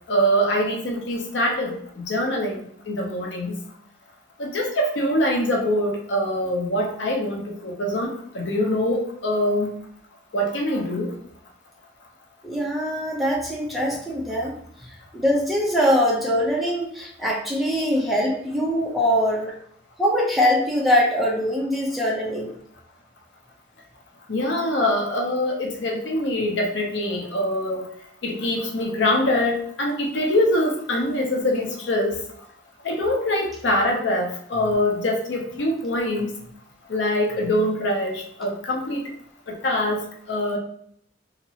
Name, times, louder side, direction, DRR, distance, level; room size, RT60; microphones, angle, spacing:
voice 1, 0.1-3.5 4.4-9.7 10.3-11.1 24.3-27.9 28.2-32.2 32.8-36.3 36.9-39.0 39.5-40.6, left 1 dB, 65° left, 1 dB, 0.6 m, -24 dB
voice 2, 12.4-14.5 15.1-19.5 20.0-22.5, equal, ahead, -4 dB, 0.6 m, -22 dB
2.9 x 2.8 x 2.7 m, 0.64 s
head